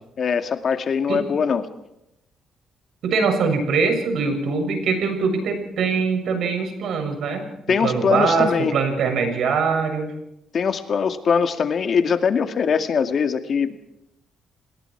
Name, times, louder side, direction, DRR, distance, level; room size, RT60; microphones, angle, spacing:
voice 1, 0.2-1.7 7.7-8.7 10.5-13.8, left 6 dB, 50° left, 7 dB, 2.1 m, -22 dB
voice 2, 3.0-7.5 7.8-10.1, right 5 dB, 70° right, 6 dB, 6.9 m, -22 dB
27.5 x 21.0 x 4.7 m, 0.83 s
cardioid pair, 90°, 0 cm